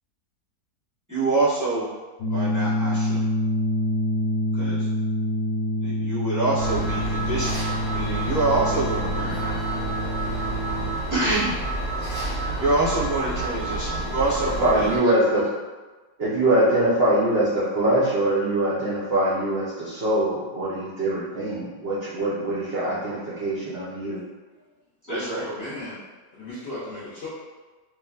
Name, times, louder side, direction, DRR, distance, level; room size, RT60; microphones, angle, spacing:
voice 1, 1.1-1.9 2.3-3.2 4.6-4.8 5.8-7.6 7.9-9.5 11.1-11.6 12.6-14.9 15.4-15.5 16.7-16.9 25.1-25.4, right 2 dB, 20° right, -13 dB, 0.5 m, -26 dB
sound 1, 2.2-10.9, left 1 dB, 90° left, 1.2 m, -26 dB
sound 2, 6.6-15.0, right 2 dB, 5° left, 0.9 m, -29 dB
voice 2, 14.6-15.4 16.2-24.2, right 1 dB, 65° right, -9 dB, 0.6 m, -23 dB
voice 3, 25.1-26.0 26.3-27.3, left 2 dB, 60° left, -11 dB, 0.7 m, -36 dB
3.1 x 2.3 x 2.3 m, 1.3 s
omnidirectional pair, 1.7 m